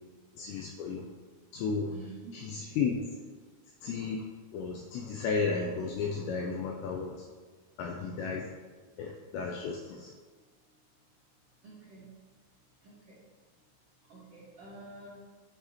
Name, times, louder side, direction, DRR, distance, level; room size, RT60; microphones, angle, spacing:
voice 1, 0.3-1.1 1.5-2.0 2.3-3.1 3.8-4.2 4.5-7.2 7.8-8.5 9.0-10.1, left 5 dB, 90° left, 2 dB, 2.4 m, -33 dB
voice 2, 1.7-2.5 11.6-12.1 12.8-13.2 14.1-15.2, right 3 dB, 85° right, -8 dB, 1.3 m, -49 dB
12.0 x 5.6 x 3.0 m, 1.4 s
omnidirectional pair, 5.6 m